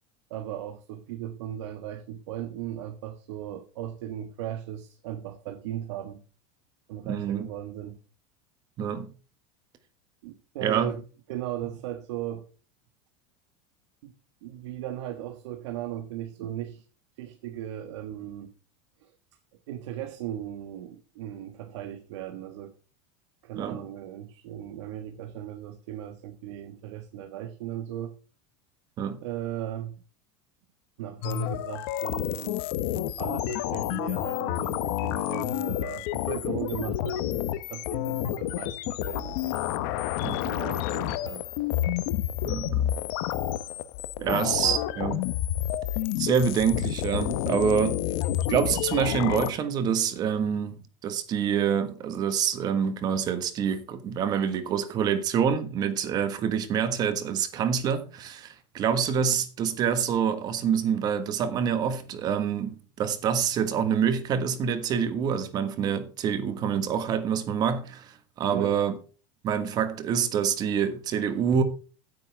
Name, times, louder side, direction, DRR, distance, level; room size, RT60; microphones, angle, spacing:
voice 1, 0.3-6.2 6.9-8.0 10.2-11.0 11.3-12.5 14.0-14.1 14.4-16.8 17.2-18.5 19.0-19.1 19.7-22.7 23.4-28.1 29.2-30.0 31.0-32.7 32.9-37.2 37.7-39.6 40.2-41.5 44.2-44.4 68.5-68.8, right 12 dB, 75° right, 1.6 m, -37 dB
voice 2, 7.0-7.5 8.8-9.1 10.6-10.9 23.5-23.8 29.0-29.2 40.2-40.4 42.4-42.9 44.2-45.2 46.2-48.0 48.5-50.8 51.0-68.9 69.4-71.6, right 7 dB, 25° right, 1.5 m, -26 dB
sound 1, 31.2-49.5, left 12 dB, 50° left, 1.0 m, -29 dB
15.5 x 9.0 x 3.5 m
supercardioid pair, 180°, 15 cm